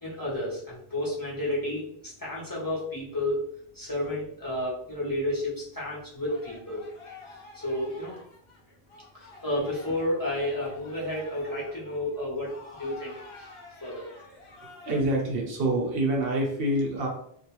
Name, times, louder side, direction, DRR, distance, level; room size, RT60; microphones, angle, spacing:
voice 1, 0.0-3.4 3.7-6.9 7.5-8.2 9.1-12.5 12.8-13.5 13.8-14.0, left 1 dB, 25° left, -7 dB, 0.7 m, -31 dB
sound 1, 6.3-15.0, left 3 dB, 70° left, 0.9 m, -49 dB
voice 2, 14.8-17.1, right 1 dB, 70° right, 0 dB, 0.9 m, -26 dB
2.3 x 2.3 x 2.9 m, 0.66 s
omnidirectional pair, 1.1 m